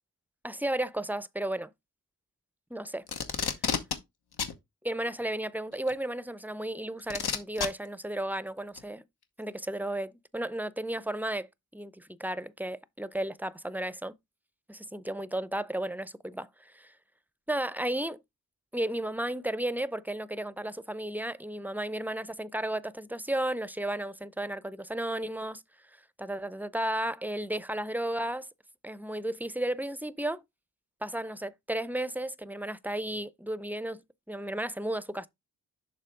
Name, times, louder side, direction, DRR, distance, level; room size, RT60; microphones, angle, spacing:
voice 1, 0.4-1.7 2.7-3.0 4.8-9.0 9.4-14.1 14.7-16.9 17.5-18.2 18.7-25.6 26.2-28.5 28.8-30.4 31.0-34.0 34.3-35.3, right 1 dB, 5° right, 0.5 m, -33 dB
Packing tape duct tape, 3.1-4.0 4.4-4.6 5.9-6.0 7.1-7.7 8.8-8.9, left 6 dB, 85° left, 1.0 m, -30 dB
6.7 x 3.2 x 5.0 m
cardioid pair, 45°, 38 cm